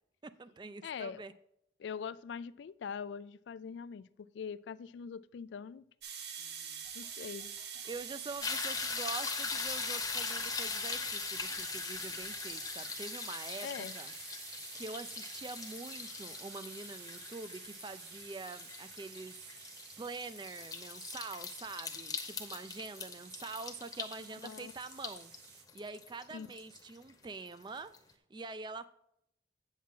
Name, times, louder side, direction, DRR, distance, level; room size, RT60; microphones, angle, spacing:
voice 1, 0.2-1.3 6.4-6.9 7.9-14.5 14.7-27.9 28.3-28.8, right 3 dB, 25° right, 0.3 m, -45 dB
voice 2, 0.8-1.2 1.8-5.8 6.9-7.5 13.6-13.9 24.4-24.7 26.3-26.5, left 6 dB, 75° left, 0.3 m, -42 dB
sound 1, 6.0-25.6, right 7 dB, 60° right, 0.9 m, -48 dB
sound 2, 6.8-12.6, right 1 dB, 80° right, 2.0 m, -62 dB
sound 3, 8.4-27.5 27.9-28.0, left 5 dB, 20° left, 0.8 m, -41 dB
8.5 x 7.3 x 3.7 m
head